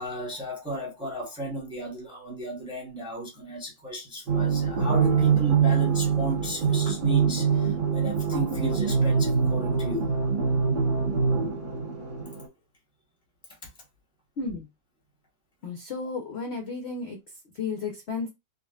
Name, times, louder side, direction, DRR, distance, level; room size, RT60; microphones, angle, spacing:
voice 1, 0.0-10.1 13.6-13.7, equal, 5° right, 0.7 m, -34 dB
sound 1, 4.3-12.5, right 6 dB, 35° right, 0.8 m, -24 dB
voice 2, 14.4-14.7 15.6-17.2 17.5-18.3, left 4 dB, 65° left, 0.6 m, -33 dB
3.7 x 2.5 x 2.3 m
omnidirectional pair, 1.9 m